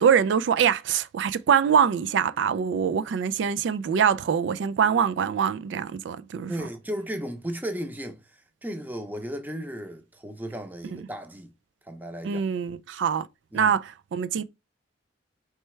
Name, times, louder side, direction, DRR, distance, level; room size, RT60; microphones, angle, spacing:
voice 1, 0.0-6.7 10.8-11.0 12.2-13.3 13.5-14.4, right 7 dB, 85° right, 0.3 m, -24 dB
voice 2, 6.5-8.2 8.6-11.5 11.9-12.4 13.5-13.7, equal, 10° right, 0.7 m, -35 dB
4.5 x 3.2 x 3.1 m
head